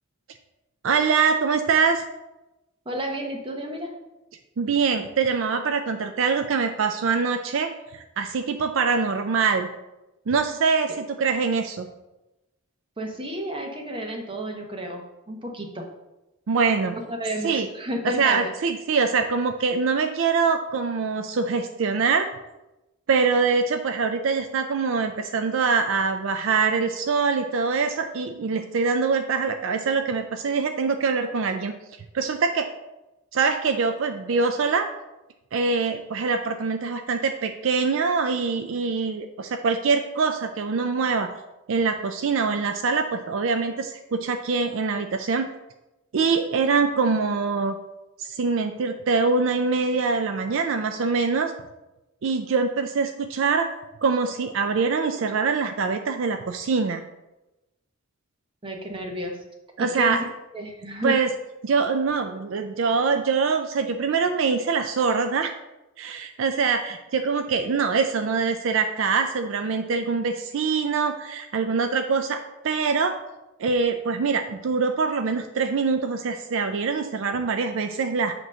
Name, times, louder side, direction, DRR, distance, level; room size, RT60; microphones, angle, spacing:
voice 1, 0.8-2.0 4.6-9.7 10.3-11.9 16.5-17.0 17.4-17.7 18.0-22.3 23.1-31.7 32.1-32.7 33.3-34.9 35.5-41.3 41.7-45.5 46.1-47.8 48.2-51.5 52.2-53.7 54.0-57.0 59.8-60.2 61.0-61.3 61.6-65.5 66.0-73.2 73.6-78.3, right 5 dB, 65° right, 7 dB, 0.4 m, -24 dB
voice 2, 2.8-3.9 13.0-15.9 17.1-18.5 58.6-59.4 59.8-60.2 60.5-61.2, equal, 25° right, 2 dB, 1.0 m, -31 dB
7.7 x 3.0 x 6.2 m, 1.0 s
head